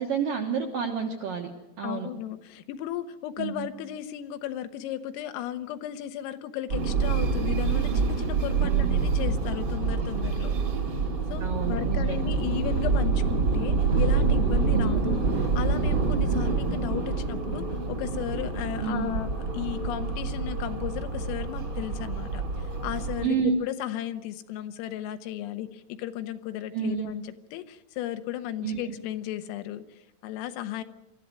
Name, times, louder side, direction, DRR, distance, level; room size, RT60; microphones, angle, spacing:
voice 1, 0.0-1.5 1.8-2.1 3.4-3.7 8.6-9.1 11.4-12.2 14.7-15.0 18.8-19.1 23.2-23.6 26.7-27.1 28.6-28.8, right 6 dB, 70° right, 1 dB, 2.1 m, -29 dB
voice 2, 1.8-10.5 11.3-30.8, left 12 dB, 80° left, 10 dB, 3.6 m, -35 dB
sound 1, 6.7-23.3, right 4 dB, 40° right, 1.5 m, -26 dB
24.5 x 14.0 x 9.5 m, 0.96 s
omnidirectional pair, 6.0 m